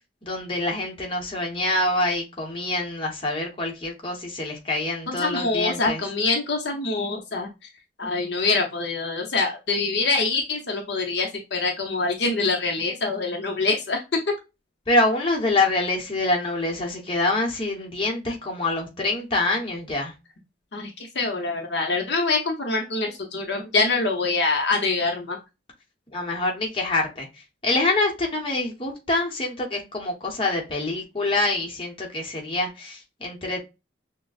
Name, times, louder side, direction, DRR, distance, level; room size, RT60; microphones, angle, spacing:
voice 1, 0.2-6.0 14.9-20.1 26.1-27.3 27.6-33.6, left 2 dB, 30° left, 1.1 m, -25 dB
voice 2, 5.1-7.5 8.0-14.0 20.7-25.4, left 3 dB, 65° left, 0.9 m, -25 dB
6.2 x 2.3 x 2.4 m
head